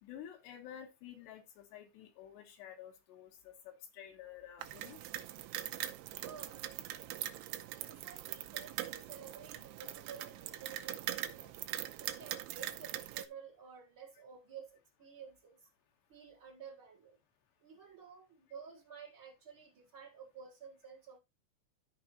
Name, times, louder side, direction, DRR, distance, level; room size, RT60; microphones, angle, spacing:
voice 1, 0.0-5.0, left 10 dB, 75° left, 3.3 m, -51 dB
sound 1, 4.6-13.3, right 13 dB, 85° right, 2.7 m, -42 dB
voice 2, 6.2-7.4 7.9-11.6 12.0-15.7 16.1-17.2 17.6-21.2, right 6 dB, 60° right, 1.3 m, -52 dB
14.0 x 5.0 x 3.0 m
omnidirectional pair, 5.1 m